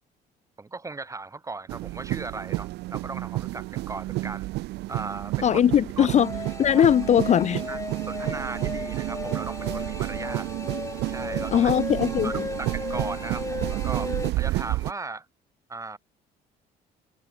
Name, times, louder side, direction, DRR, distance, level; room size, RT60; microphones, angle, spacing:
voice 1, 0.6-4.5 4.9-5.6 6.0-6.1 6.7-6.8 7.7-7.8 8.1-10.5 11.1-11.7 12.2-12.3 12.6-15.3 15.7-16.0, right 3 dB, 20° right, 3.1 m, -37 dB
sound 1, 1.7-14.9, right 19 dB, 80° right, 0.9 m, -31 dB
voice 2, 5.4-6.3 6.6-7.6 11.5-12.3, left 9 dB, 45° left, 0.7 m, -20 dB
sound 2, 6.2-14.3, left 3 dB, 20° left, 4.4 m, -35 dB
cardioid pair, 110°, 17 cm